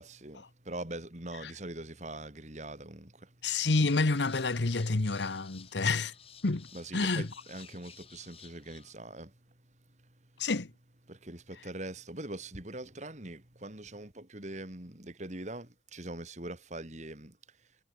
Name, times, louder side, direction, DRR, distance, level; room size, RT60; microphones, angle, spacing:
voice 1, 0.0-3.3 6.7-9.4 11.1-17.4, right 1 dB, 40° right, 2.9 m, -42 dB
voice 2, 3.4-6.1 6.4-6.7 6.9-7.3 10.4-10.7, left 3 dB, 85° left, 1.1 m, -28 dB
sound 1, 3.7-8.9, left 8 dB, 35° left, 3.8 m, -54 dB
head